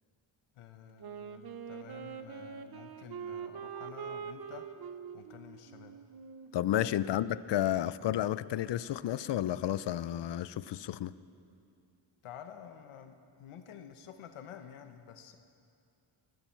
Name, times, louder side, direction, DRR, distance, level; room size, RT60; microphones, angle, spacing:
voice 1, 0.5-4.7 5.1-5.9 6.9-7.2 12.2-15.4, left 9 dB, 90° left, 7 dB, 0.9 m, -50 dB
Wind instrument woodwind instrument, 1.0-7.6, right 7 dB, 50° right, 0.8 m, -44 dB
voice 2, 6.5-11.1, left 12 dB, 60° left, 17 dB, 0.6 m, -31 dB
19.5 x 14.5 x 4.5 m, 2.5 s
cardioid pair, 100°, 49 cm